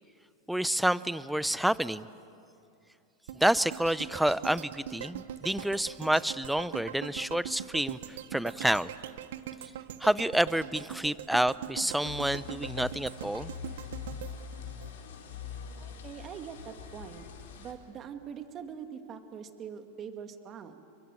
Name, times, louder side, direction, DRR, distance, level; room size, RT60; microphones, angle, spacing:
voice 1, 0.5-2.1 3.3-8.9 10.0-13.5, right 1 dB, 5° right, 17 dB, 0.6 m, -28 dB
sound 1, 3.3-15.5 15.9-16.0, right 10 dB, 75° right, 1.2 m, -42 dB
sound 2, 12.0-17.7, left 7 dB, 80° left, 4.5 m, -43 dB
voice 2, 15.8-17.3 17.6-20.8, right 7 dB, 35° right, 7 dB, 2.2 m, -43 dB
29.5 x 23.0 x 7.8 m, 2.5 s
hypercardioid pair, 115°, 0 cm